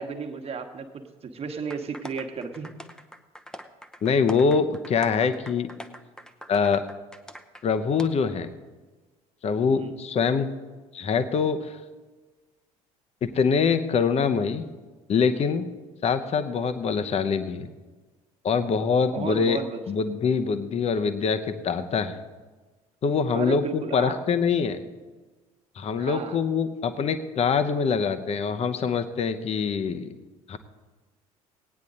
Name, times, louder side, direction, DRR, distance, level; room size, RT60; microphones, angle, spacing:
voice 1, 0.0-2.7 9.7-9.9 19.1-19.8 23.3-24.2 25.9-26.4, right 5 dB, 30° right, 5 dB, 1.3 m, -33 dB
sound 1, 1.7-7.6 8.0-8.1, equal, 5° left, 0.7 m, -43 dB
voice 2, 4.0-5.7 6.5-6.8 7.6-8.5 9.4-10.5 10.9-11.8 13.2-14.6 15.1-15.7 16.0-17.7 18.4-19.6 19.9-22.1 23.0-24.8 25.8-30.1 30.5-30.6, left 5 dB, 35° left, 10 dB, 0.9 m, -24 dB
17.5 x 9.5 x 4.0 m, 1.3 s
figure-of-eight pair, 55°, 19 cm